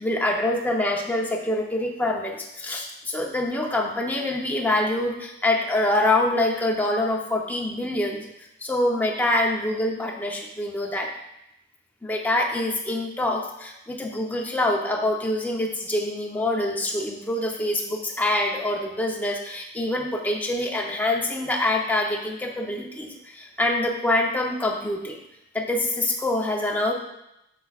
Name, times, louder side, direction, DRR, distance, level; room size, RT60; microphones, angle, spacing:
voice 1, 0.0-8.3 8.6-11.1 12.0-25.2 25.5-26.9, left 1 dB, 10° left, 0 dB, 0.7 m, -25 dB
7.8 x 5.8 x 2.4 m, 0.84 s
head